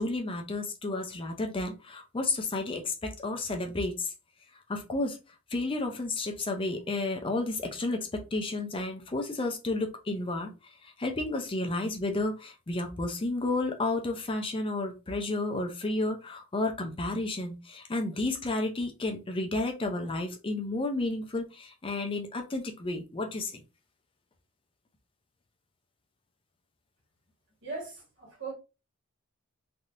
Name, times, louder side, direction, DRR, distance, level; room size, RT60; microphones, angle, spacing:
voice 1, 0.0-4.1 4.7-5.2 5.5-23.6, left 2 dB, 25° left, 0.5 m, -32 dB
voice 2, 27.6-28.5, right 3 dB, 60° right, 1.7 m, -39 dB
3.3 x 2.7 x 2.5 m
head